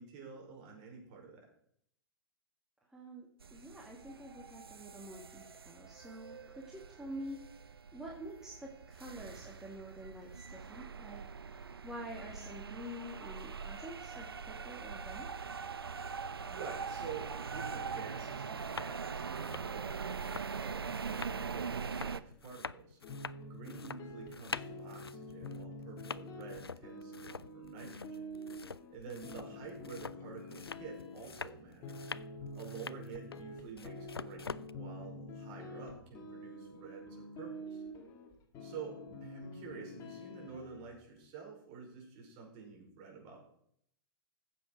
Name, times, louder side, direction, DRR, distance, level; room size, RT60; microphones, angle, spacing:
voice 1, 0.0-1.5 16.5-23.0 23.5-28.3 28.9-32.1 32.5-37.8 38.6-43.4, right 5 dB, 35° right, 0 dB, 5.0 m, -49 dB
voice 2, 2.8-15.3 29.1-29.7, equal, 5° right, -2 dB, 1.8 m, -48 dB
sound 1, 3.4-22.2, right 5 dB, 75° right, 0.7 m, -42 dB
sound 2, 18.5-18.9 19.2-34.7, left 5 dB, 80° left, 0.5 m, -46 dB
sound 3, 23.0-41.0, left 1 dB, 25° left, 2.3 m, -47 dB
15.0 x 7.5 x 4.6 m, 0.68 s
figure-of-eight pair, 110°, 13 cm